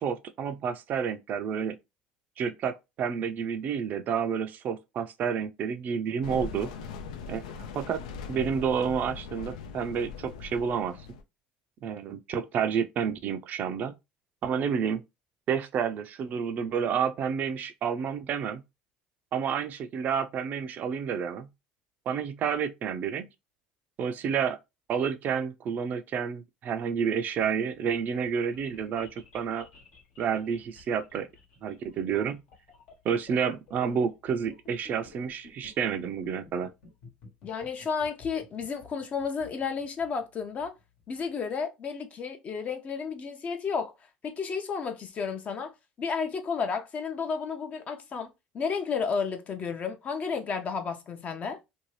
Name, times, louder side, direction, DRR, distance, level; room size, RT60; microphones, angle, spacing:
voice 1, 0.0-1.8 2.4-6.7 7.3-8.0 8.3-11.0 11.8-13.9 14.4-15.0 15.5-18.6 19.3-21.5 22.1-23.3 24.0-24.6 24.9-29.7 30.2-31.3 31.6-32.4 33.0-36.7, right 7 dB, 50° right, 0.4 m, -30 dB
sound 1, 6.2-11.2, left 5 dB, 85° left, 0.4 m, -40 dB
sound 2, 27.1-41.2, left 3 dB, 65° left, 1.1 m, -53 dB
voice 2, 37.4-40.7 41.1-43.9 44.2-45.7 46.0-51.6, left 5 dB, 40° left, 0.6 m, -32 dB
2.6 x 2.2 x 3.1 m
hypercardioid pair, 80°, 4 cm